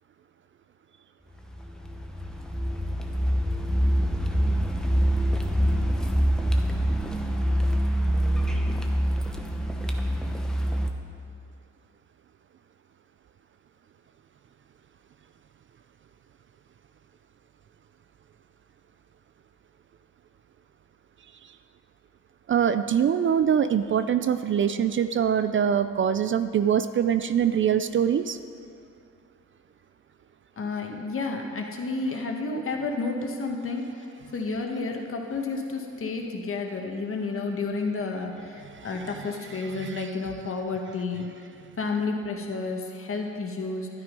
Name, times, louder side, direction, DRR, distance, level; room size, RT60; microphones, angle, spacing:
Car, 1.4-10.9, equal, ahead, 1.0 m, -25 dB
voice 1, 22.5-28.4 38.7-38.9 39.6-40.1, right 8 dB, 40° right, 11 dB, 0.4 m, -24 dB
voice 2, 30.6-33.9 34.3-41.3 41.8-43.9, left 3 dB, 45° left, 2 dB, 1.8 m, -31 dB
12.0 x 9.6 x 5.4 m, 2.4 s
cardioid pair, 90°, 30 cm